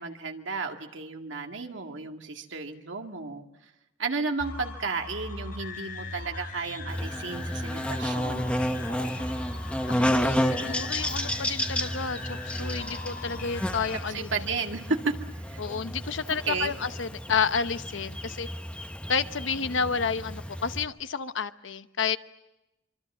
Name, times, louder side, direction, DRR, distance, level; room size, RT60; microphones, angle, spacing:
voice 1, 0.0-3.4 4.0-8.6 14.1-15.1 15.5-15.6 16.5-16.7, right 4 dB, 75° right, 3 dB, 2.1 m, -33 dB
sound 1, 4.4-14.0, left 2 dB, 45° left, 5.0 m, -38 dB
Buzz, 6.9-20.8, equal, 5° left, 1.0 m, -32 dB
voice 2, 9.9-14.3 15.6-18.5 19.1-22.2, left 6 dB, 75° left, 11 dB, 0.9 m, -30 dB
25.0 x 24.5 x 7.3 m, 0.96 s
head